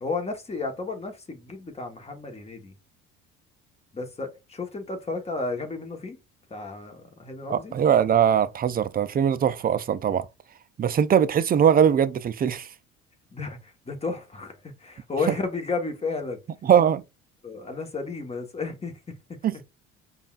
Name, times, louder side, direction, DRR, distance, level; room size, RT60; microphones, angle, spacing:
voice 1, 0.0-2.7 3.9-6.2 6.5-7.7 13.3-16.4 17.4-19.1, left 3 dB, 20° left, 1.1 m, -33 dB
voice 2, 7.5-10.3 10.8-12.7 16.6-17.0 19.4-19.5, right 8 dB, 30° right, 0.4 m, -21 dB
5.3 x 2.4 x 2.4 m
supercardioid pair, 70°, 30 cm